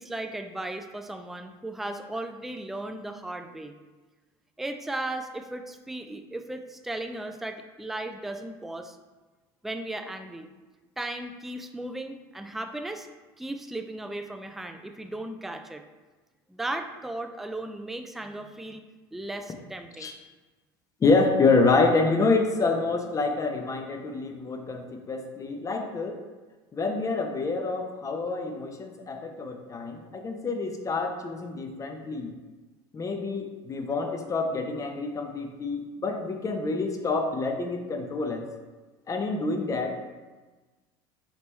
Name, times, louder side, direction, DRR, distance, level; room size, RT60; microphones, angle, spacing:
voice 1, 0.0-3.7 4.6-9.0 9.6-10.5 11.0-13.1 13.4-15.8 16.5-18.8 19.1-20.1, right 1 dB, ahead, 6 dB, 0.3 m, -36 dB
voice 2, 21.0-26.2 26.7-32.3 32.9-38.5 39.1-40.0, left 3 dB, 25° left, 4 dB, 0.6 m, -27 dB
5.1 x 3.0 x 3.1 m, 1.2 s
hypercardioid pair, 85°, 12 cm